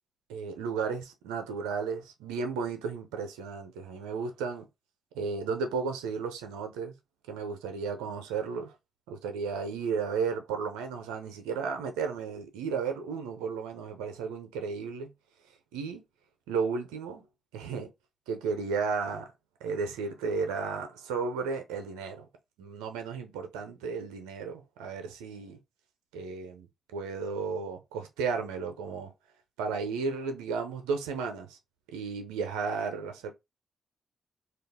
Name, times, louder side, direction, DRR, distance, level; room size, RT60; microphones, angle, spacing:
voice 1, 0.3-4.7 5.1-6.9 7.3-8.7 9.1-15.1 15.7-16.0 16.5-17.2 17.5-17.9 18.3-19.3 19.6-22.3 22.6-25.6 26.1-29.1 29.6-31.6 31.9-33.3, right 5 dB, 85° right, 0.5 m, -34 dB
2.3 x 2.3 x 3.4 m
hypercardioid pair, 40°, 0 cm